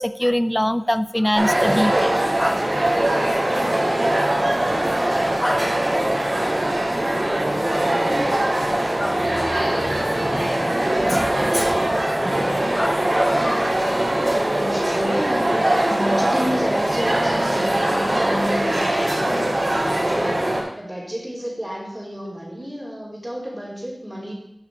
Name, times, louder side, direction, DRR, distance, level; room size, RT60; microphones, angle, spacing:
voice 1, 0.0-2.1 2.4-2.9 5.2-5.7 7.0-7.3 7.6-7.9 8.9-9.3 9.6-10.8 11.1-11.9 12.2-12.4 12.8-14.2, equal, 10° left, 12 dB, 0.5 m, -26 dB
almoco no shopping, 1.3-20.6, right 1 dB, 55° right, 3.9 m, -21 dB
voice 2, 12.2-12.8 14.4-20.5 20.7-24.3, equal, 20° right, -8 dB, 3.3 m, -31 dB
12.0 x 5.0 x 4.8 m, 0.78 s
wide cardioid pair, 50°, 0 cm